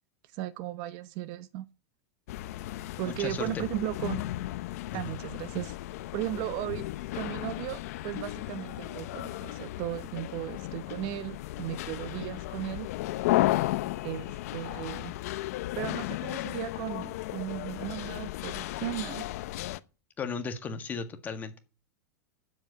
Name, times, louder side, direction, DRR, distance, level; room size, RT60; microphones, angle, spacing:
voice 1, 0.3-1.7 3.0-4.2 4.9-5.8 6.1-6.9 7.1-12.9 14.0-15.1 15.8-19.2, right 15 dB, 45° right, 1.0 m, -36 dB
sound 1, 2.3-19.8, left 16 dB, 60° left, 0.8 m, -34 dB
voice 2, 3.0-3.6 4.9-5.1 20.2-21.6, left 5 dB, 20° left, 1.8 m, -36 dB
12.0 x 8.0 x 8.5 m
supercardioid pair, 155°, 9 cm